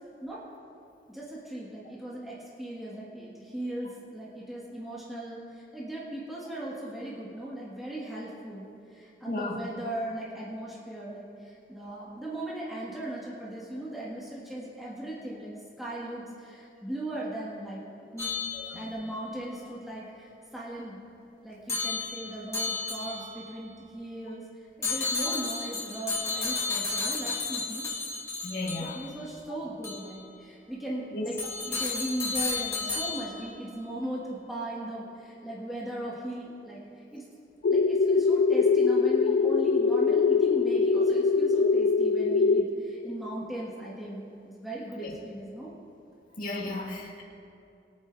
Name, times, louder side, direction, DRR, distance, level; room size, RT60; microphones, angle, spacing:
voice 1, 1.1-17.8 18.1-18.3 18.7-21.0 21.4-27.8 28.7-31.4 31.7-36.8 37.1-37.2 37.7-45.7 46.7-47.0, right 1 dB, ahead, -8 dB, 1.8 m, -38 dB
voice 2, 9.3-9.6 18.5-18.8 28.4-29.0 31.1-31.3 45.0-45.1 46.4-47.2, left 2 dB, 50° left, -4 dB, 2.1 m, -34 dB
sound 1, 18.2-19.1 21.7-23.4 24.8-29.2 29.8-30.0 31.4-33.5, left 4 dB, 15° left, 1.8 m, -32 dB
sound 2, 37.6-42.6, left 4 dB, 80° left, 0.4 m, -23 dB
22.0 x 9.3 x 2.6 m, 2.7 s
head